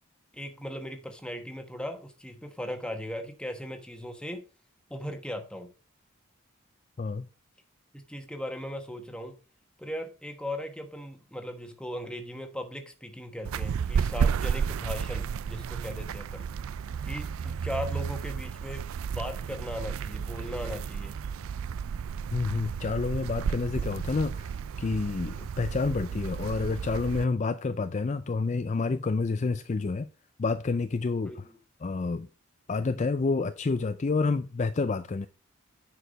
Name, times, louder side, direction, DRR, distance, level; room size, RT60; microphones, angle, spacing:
voice 1, 0.3-4.4 4.9-5.7 7.9-9.4 9.8-16.5 17.0-21.2 31.2-31.6, equal, 5° left, 1.2 m, -38 dB
sound 1, 13.4-27.2, right 6 dB, 85° right, 0.4 m, -32 dB
voice 2, 22.3-30.1 30.4-31.5 31.8-32.3 32.7-35.3, left 4 dB, 35° left, 0.4 m, -29 dB
10.0 x 4.8 x 5.2 m
head